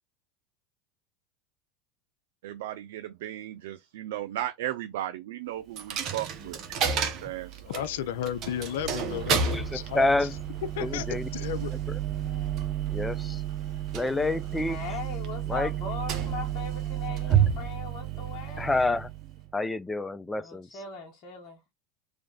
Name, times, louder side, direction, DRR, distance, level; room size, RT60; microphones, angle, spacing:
voice 1, 2.4-6.6 6.9-7.8, right 13 dB, 75° right, 0.4 m, -36 dB
Coin (dropping), 5.8-19.5, right 8 dB, 50° right, 0.9 m, -31 dB
voice 2, 7.7-10.3 10.7-11.7, left 10 dB, 75° left, 0.4 m, -33 dB
voice 3, 9.9-10.3 10.8-11.3 12.9-13.4 13.9-14.8 15.5-15.7 18.6-19.1 19.5-20.7, left 2 dB, 10° left, 0.4 m, -27 dB
voice 4, 12.1-12.7 14.7-18.9 20.4-21.6, left 6 dB, 55° left, 1.0 m, -40 dB
3.1 x 2.5 x 3.8 m
hypercardioid pair, 100°, 0 cm